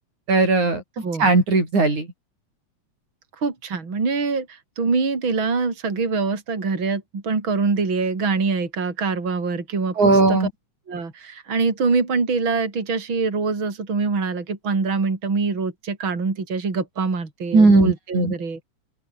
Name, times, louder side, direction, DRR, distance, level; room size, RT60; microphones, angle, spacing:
voice 1, 0.3-0.8 1.2-2.1 10.0-10.5 17.5-18.3, right 3 dB, 85° right, 9.6 m, -17 dB
voice 2, 3.4-10.5 10.9-18.6, right 4 dB, 40° right, 4.8 m, -24 dB
open air
omnidirectional pair, 3.3 m